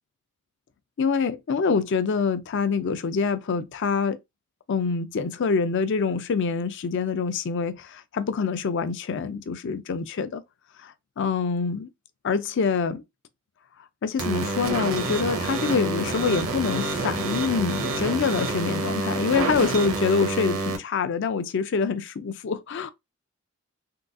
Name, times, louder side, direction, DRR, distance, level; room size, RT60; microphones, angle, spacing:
voice 1, 1.0-4.2 4.7-10.4 10.8-11.9 12.2-13.0 14.0-22.9, left 5 dB, 60° left, 0.4 m, -25 dB
sound 1, 14.2-20.8, right 3 dB, 75° right, 0.9 m, -28 dB
3.7 x 2.3 x 2.5 m
head